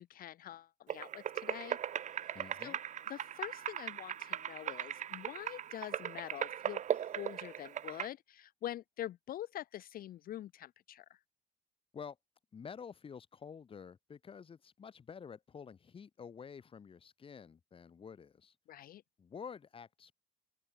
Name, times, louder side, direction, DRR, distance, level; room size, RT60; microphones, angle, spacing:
voice 1, 0.0-1.8 2.6-2.8 3.1-11.2 18.7-19.0, left 12 dB, 60° left, 0.9 m, -45 dB
sound 1, 0.9-8.1, right 9 dB, 45° right, 1.0 m, -39 dB
voice 2, 2.3-2.8 11.9-12.2 12.5-18.5 19.2-20.1, left 6 dB, 35° left, 1.4 m, -49 dB
open air
cardioid pair, 110°, 17 cm